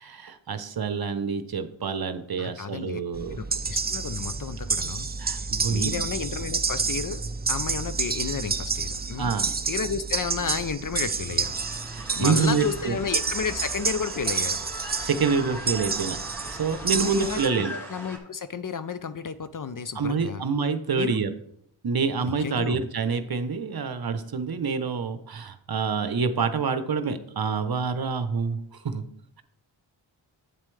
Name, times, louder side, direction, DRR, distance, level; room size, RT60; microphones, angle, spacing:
voice 1, 0.0-3.4 5.2-6.0 9.2-9.5 11.9-13.0 15.0-16.2 16.5-17.7 19.9-21.3 21.8-29.0, right 5 dB, 50° right, 11 dB, 0.8 m, -27 dB
voice 2, 2.4-3.0 3.3-5.1 5.7-7.2 7.5-9.3 9.7-11.5 12.1-14.6 16.9-20.4 21.0-21.2 22.4-22.8, left 6 dB, 40° left, 13 dB, 0.6 m, -32 dB
sound 1, 3.1-17.5, right 4 dB, 20° right, 0.5 m, -29 dB
sound 2, 11.4-18.2, equal, 5° left, 2.2 m, -40 dB
8.5 x 7.4 x 3.2 m, 0.70 s
cardioid pair, 45°, 49 cm